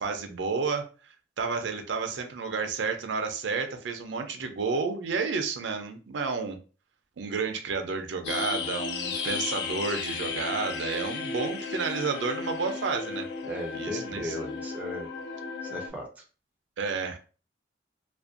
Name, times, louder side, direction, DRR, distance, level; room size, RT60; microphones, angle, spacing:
voice 1, 0.0-6.6 7.2-13.3 13.7-14.4 16.8-17.2, right 4 dB, 80° right, 6 dB, 0.4 m, -31 dB
sound 1, 8.2-15.9, left 4 dB, 65° left, 0.4 m, -34 dB
voice 2, 13.4-15.1 15.6-16.2, left 1 dB, 10° right, 0 dB, 0.4 m, -36 dB
2.5 x 2.2 x 2.4 m, 0.36 s
head